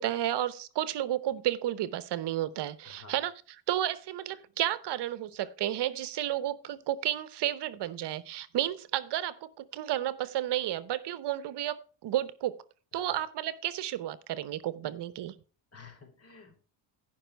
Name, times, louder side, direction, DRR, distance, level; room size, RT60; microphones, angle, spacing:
voice 1, 0.0-3.3 3.7-12.6 12.9-15.3, right 12 dB, 65° right, 16 dB, 0.9 m, -32 dB
voice 2, 2.8-3.2 12.9-13.2 15.7-16.6, left 4 dB, 30° left, 5 dB, 3.6 m, -52 dB
15.5 x 5.6 x 4.5 m, 0.37 s
cardioid pair, 95°, 45 cm